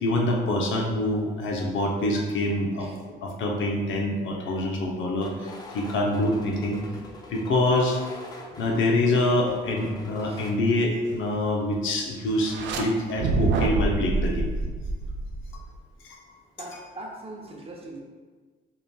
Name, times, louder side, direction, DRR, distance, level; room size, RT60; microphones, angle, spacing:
voice 1, 0.0-2.9 3.2-6.8 7.3-8.0 8.6-14.5 16.7-16.8, left 1 dB, 75° left, 0 dB, 0.7 m, -25 dB
sound 1, 5.2-10.5, left 2 dB, 20° left, 0.6 m, -43 dB
sound 2, 12.4-12.8 13.2-15.7, right 3 dB, 70° right, 0.5 m, -26 dB
voice 2, 16.6-18.0, right 1 dB, 30° right, -1 dB, 0.8 m, -40 dB
5.2 x 3.0 x 2.3 m, 1.4 s
cardioid pair, 90°, 20 cm